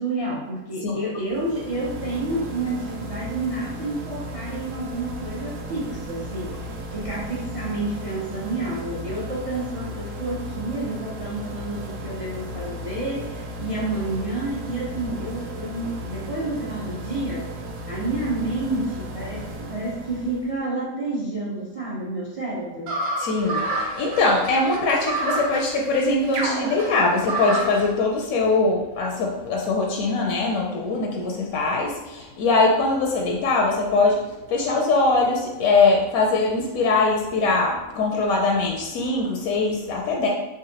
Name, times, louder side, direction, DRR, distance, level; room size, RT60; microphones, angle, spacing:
voice 1, 0.0-17.5 17.9-23.0, right 2 dB, 50° right, -5 dB, 0.4 m, -29 dB
sound 1, 1.2-20.6, equal, 70° right, 0.9 m, -35 dB
sound 2, 22.9-27.9, right 2 dB, 90° right, 1.3 m, -28 dB
voice 2, 23.2-40.3, left 3 dB, 80° left, 0 dB, 1.0 m, -22 dB
3.8 x 3.4 x 2.8 m, 1.0 s
omnidirectional pair, 1.5 m